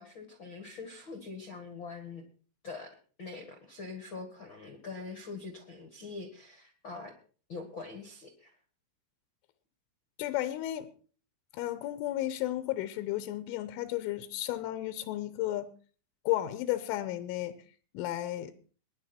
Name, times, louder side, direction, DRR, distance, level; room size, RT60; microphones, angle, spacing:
voice 1, 0.0-2.2 2.6-2.9 3.2-7.1 7.5-8.5, left 4 dB, 60° left, 1.2 m, -43 dB
voice 2, 10.2-10.9 11.5-15.7 16.3-17.6 18.0-18.5, left 14 dB, 85° left, 3.4 m, -33 dB
22.0 x 10.5 x 4.4 m
omnidirectional pair, 5.5 m